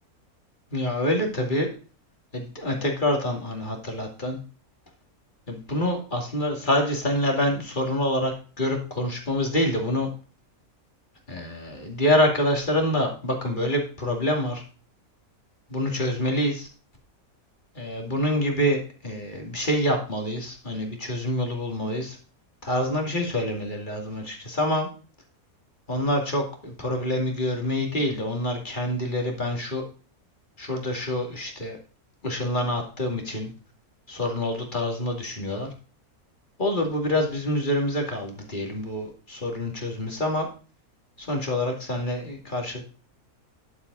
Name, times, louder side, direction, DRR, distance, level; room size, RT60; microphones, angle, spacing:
voice 1, 0.7-1.7 2.3-4.4 5.5-10.1 11.3-14.6 15.7-16.7 17.7-22.2 22.6-24.9 25.9-29.8 30.6-31.8 32.2-33.5 34.1-35.7 36.6-40.5 41.2-42.8, left 1 dB, 30° left, 2 dB, 2.6 m, -26 dB
11.0 x 7.7 x 4.0 m, 0.37 s
omnidirectional pair, 1.6 m